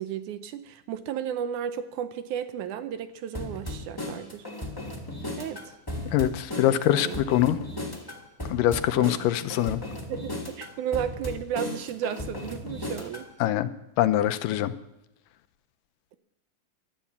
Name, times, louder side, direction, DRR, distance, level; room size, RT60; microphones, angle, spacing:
voice 1, 0.0-4.5 5.4-5.8 7.0-7.2 9.0-9.1 10.1-13.3, right 9 dB, 75° right, 11 dB, 2.0 m, -33 dB
sound 1, 3.3-13.3, left 1 dB, 10° left, 1.4 m, -36 dB
voice 2, 6.1-7.6 8.5-9.8 13.4-13.7 14.0-14.7, left 12 dB, 85° left, 12 dB, 2.4 m, -23 dB
16.5 x 12.0 x 7.1 m, 0.92 s
omnidirectional pair, 3.8 m